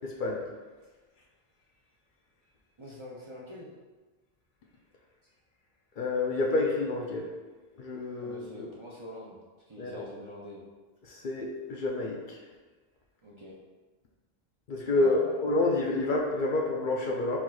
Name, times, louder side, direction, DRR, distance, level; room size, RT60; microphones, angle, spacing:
voice 1, 0.0-0.4 6.0-7.3 7.8-8.7 9.8-10.1 11.0-12.4 14.7-17.4, left 2 dB, 60° left, -1 dB, 0.7 m, -29 dB
voice 2, 2.8-3.7 8.2-9.4 9.7-10.6 13.2-13.6 14.9-15.5, equal, 35° right, -5 dB, 0.5 m, -44 dB
4.5 x 4.4 x 2.3 m, 1.3 s
omnidirectional pair, 1.0 m